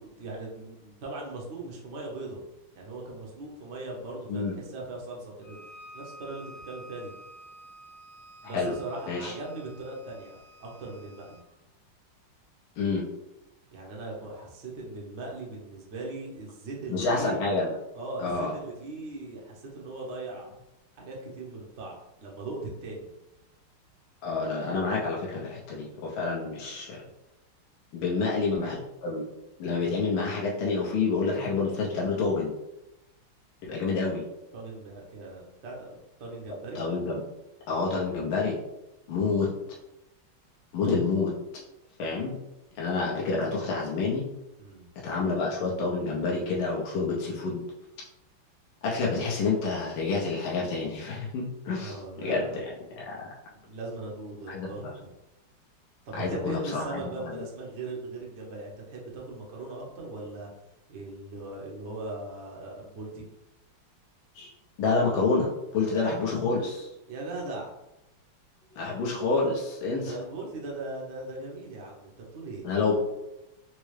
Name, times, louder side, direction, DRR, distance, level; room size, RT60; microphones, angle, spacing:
voice 1, 0.0-2.4 2.7-5.6 5.9-7.1 8.4-11.4 13.7-17.4 17.9-20.5 21.0-23.1 28.0-28.2 34.5-36.8 44.6-44.9 51.8-52.7 53.5-55.1 56.1-60.5 60.9-63.3 67.1-67.7 70.0-72.7, right 2 dB, 65° right, -2 dB, 0.6 m, -39 dB
Bowed string instrument, 5.4-11.5, right 1 dB, 60° left, 0.8 m, -50 dB
voice 2, 12.8-13.1 16.9-17.7 18.2-18.5 24.2-27.0 27.9-29.2 29.6-32.5 33.6-34.3 36.7-37.2 37.7-38.6 39.1-39.5 40.7-41.3 42.0-42.4 42.8-44.3 45.0-47.6 48.8-51.9 52.2-52.6 53.0-53.2 54.5-54.7 56.1-57.3 64.3-64.5 64.8-66.9 68.8-70.1 72.6-72.9, left 4 dB, 75° left, -4 dB, 1.4 m, -28 dB
4.6 x 2.1 x 3.1 m, 0.93 s
omnidirectional pair, 2.4 m